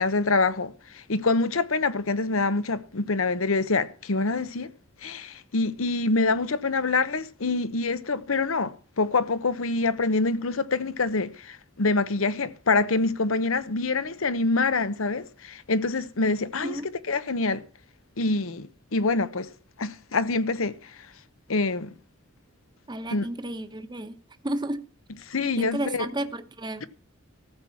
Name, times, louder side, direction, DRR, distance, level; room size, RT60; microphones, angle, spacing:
voice 1, 0.0-4.7 5.0-17.6 18.2-19.5 19.8-20.8 21.5-21.9 23.1-23.2 25.3-26.1 26.8-26.9, left 3 dB, 85° left, 0.9 m, -26 dB
voice 2, 22.9-24.2 24.4-24.9 25.6-26.9, right 1 dB, 20° right, 0.9 m, -32 dB
14.0 x 6.3 x 7.2 m
head